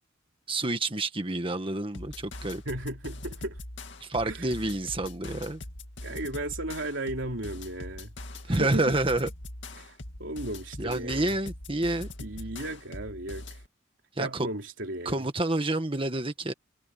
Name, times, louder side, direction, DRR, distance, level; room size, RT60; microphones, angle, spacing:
voice 1, 0.5-2.6 4.0-5.6 8.5-9.3 10.8-12.1 14.2-14.5 15.1-16.5, right 2 dB, 25° right, 1.6 m, -28 dB
sound 1, 1.9-13.7, left 2 dB, 65° left, 2.4 m, -42 dB
voice 2, 2.7-3.6 4.3-4.5 6.0-8.1 8.5-8.9 9.8-11.4 12.2-13.6 14.2-15.3, right 1 dB, 70° right, 3.6 m, -35 dB
head